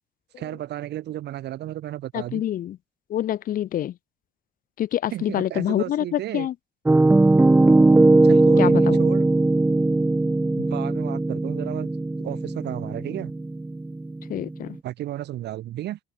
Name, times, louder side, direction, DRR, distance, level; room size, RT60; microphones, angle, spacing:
voice 1, 0.4-2.4 5.1-6.5 8.2-9.3 10.6-11.9 12.2-13.3 14.8-16.0, right 13 dB, 75° right, 4.8 m, -33 dB
voice 2, 2.1-2.8 3.1-3.9 4.8-6.5 8.6-9.0 14.3-14.8, left 11 dB, 55° left, 0.7 m, -26 dB
Piano, 6.9-14.7, right 2 dB, 10° right, 0.6 m, -19 dB
cardioid pair, 140°, 17 cm